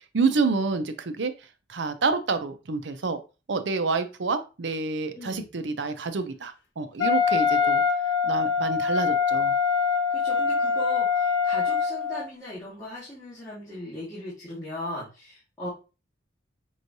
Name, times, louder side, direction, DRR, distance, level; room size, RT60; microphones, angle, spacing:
voice 1, 0.1-1.3 1.7-3.2 3.5-7.8 8.2-9.6, right 4 dB, 70° right, 10 dB, 0.6 m, -28 dB
voice 2, 5.1-5.5 10.1-15.7, left 1 dB, 15° left, -10 dB, 1.8 m, -38 dB
Wind instrument woodwind instrument, 7.0-12.3, left 6 dB, 65° left, 1.3 m, -24 dB
5.4 x 3.1 x 2.7 m, 0.31 s
head